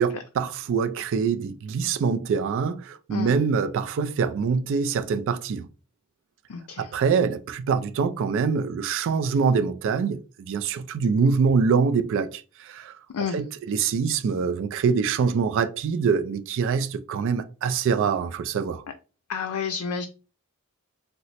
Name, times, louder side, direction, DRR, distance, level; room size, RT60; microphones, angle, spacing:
voice 1, 0.0-5.7 6.8-18.8, right 5 dB, 60° right, 0.3 m, -24 dB
voice 2, 6.5-6.9 13.1-13.4 19.3-20.0, left 6 dB, 75° left, 0.4 m, -30 dB
3.0 x 2.0 x 4.0 m
head